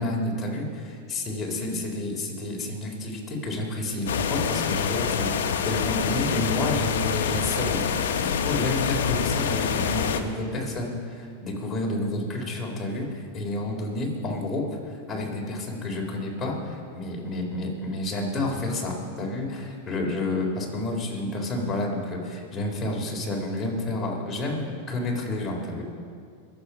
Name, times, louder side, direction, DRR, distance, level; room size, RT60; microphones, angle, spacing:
voice 1, 0.0-25.8, left 2 dB, 25° left, -2 dB, 4.0 m, -30 dB
sound 1, 4.1-10.2, left 7 dB, 75° left, 1.1 m, -26 dB
23.0 x 7.8 x 5.8 m, 2.2 s
hypercardioid pair, 105°, 0 cm